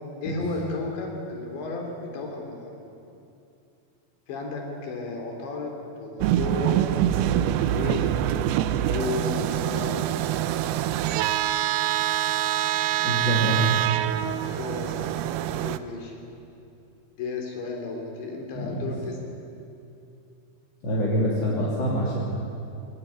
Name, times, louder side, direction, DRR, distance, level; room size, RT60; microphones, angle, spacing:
voice 1, 0.2-2.8 4.3-8.1 8.8-10.0 14.4-15.2 15.5-16.1 17.2-19.2, left 3 dB, 75° left, 1 dB, 5.7 m, -33 dB
sound 1, 6.2-15.8, right 12 dB, 80° right, 2.4 m, -25 dB
voice 2, 13.0-13.6 18.5-18.9 20.8-22.2, right 1 dB, 25° left, -6 dB, 3.2 m, -25 dB
22.5 x 18.0 x 9.9 m, 2.7 s
omnidirectional pair, 5.2 m